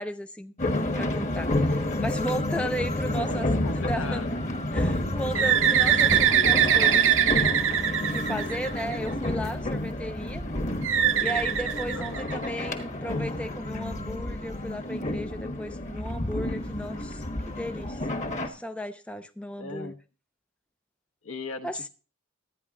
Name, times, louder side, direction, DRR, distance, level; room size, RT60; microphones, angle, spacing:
voice 1, 0.0-3.5 3.9-4.2 4.7-7.6 8.1-10.4 11.2-18.1 18.4-19.9 21.6-21.9, equal, 5° left, 0.4 m, -35 dB
sound 1, 0.6-18.5, left 1 dB, 30° left, 1.3 m, -30 dB
sound 2, 3.0-3.7 3.9-4.0 5.9-6.8 8.4-9.3, right 1 dB, 20° right, 0.9 m, -40 dB
voice 2, 3.1-4.3 5.2-5.6 11.9-12.3 19.6-20.0 21.2-21.9, left 3 dB, 65° left, 1.2 m, -38 dB
Bird, 5.3-9.1 10.8-12.6, right 9 dB, 60° right, 0.7 m, -22 dB
12.0 x 9.7 x 3.6 m
head